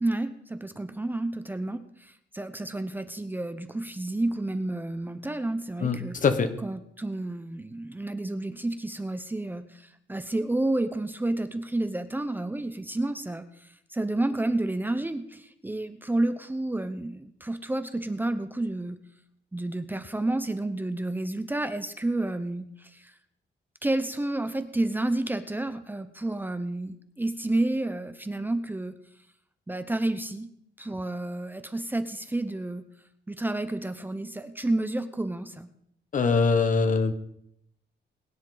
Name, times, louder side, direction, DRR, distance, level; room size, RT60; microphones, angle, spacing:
voice 1, 0.0-6.2 6.6-19.0 19.5-23.1 23.8-29.0 29.7-30.5 30.8-32.8 33.3-35.7, right 2 dB, 10° right, 9 dB, 0.7 m, -30 dB
voice 2, 5.8-6.5 36.1-37.1, left 4 dB, 45° left, 9 dB, 1.3 m, -23 dB
22.0 x 10.0 x 3.9 m, 0.72 s
wide cardioid pair, 165°, 19 cm